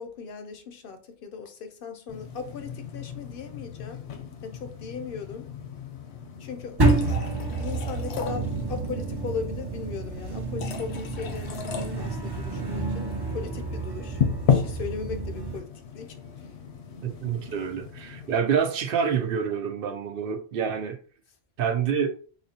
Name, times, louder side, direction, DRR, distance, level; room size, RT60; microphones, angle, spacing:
voice 1, 0.0-4.0 4.4-5.5 6.4-6.8 7.5-14.2 14.5-15.7 15.9-16.5, left 5 dB, 65° left, 0.7 m, -38 dB
sound 1, 2.1-18.4, left 7 dB, 90° left, 0.9 m, -34 dB
sound 2, 6.8-15.6, right 3 dB, 30° right, 0.5 m, -29 dB
voice 2, 17.0-21.0 21.6-22.1, right 7 dB, 65° right, 0.8 m, -27 dB
4.0 x 2.8 x 2.8 m
omnidirectional pair, 1.1 m